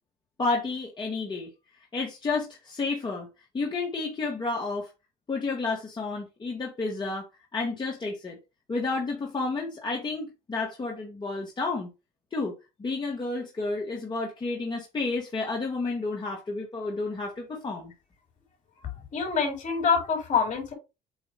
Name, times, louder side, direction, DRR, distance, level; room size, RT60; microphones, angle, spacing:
voice 1, 0.4-1.5 1.9-3.3 3.5-4.9 5.3-8.4 8.7-11.9 12.3-12.5 12.8-17.9, left 3 dB, 25° left, 1.7 m, -31 dB
voice 2, 19.1-20.7, left 5 dB, 50° left, 4.1 m, -25 dB
8.0 x 2.7 x 5.3 m
cardioid pair, 110°, 17 cm